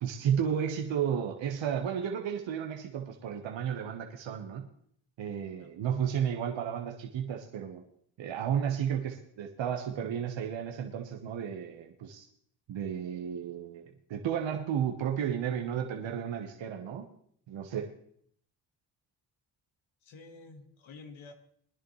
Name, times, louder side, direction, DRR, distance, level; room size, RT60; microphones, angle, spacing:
voice 1, 0.0-4.7 5.2-7.8 8.2-12.3 12.7-17.1 17.5-17.9, right 8 dB, 70° right, 3 dB, 1.3 m, -33 dB
voice 2, 20.0-21.3, left 3 dB, 85° left, 6 dB, 1.6 m, -50 dB
21.0 x 10.5 x 3.2 m, 0.63 s
supercardioid pair, 60°, 46 cm